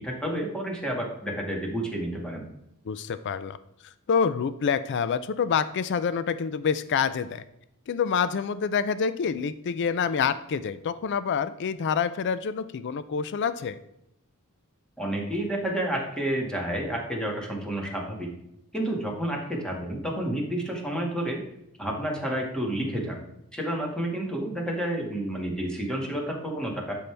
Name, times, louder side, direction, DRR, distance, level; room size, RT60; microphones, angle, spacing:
voice 1, 0.0-2.5 15.0-18.3 18.7-21.4 21.8-23.2 23.5-27.0, right 1 dB, 5° left, -1 dB, 1.9 m, -30 dB
voice 2, 2.9-3.6 4.1-7.4 7.9-13.8, left 6 dB, 50° left, 14 dB, 0.4 m, -27 dB
12.0 x 5.4 x 3.4 m, 0.82 s
head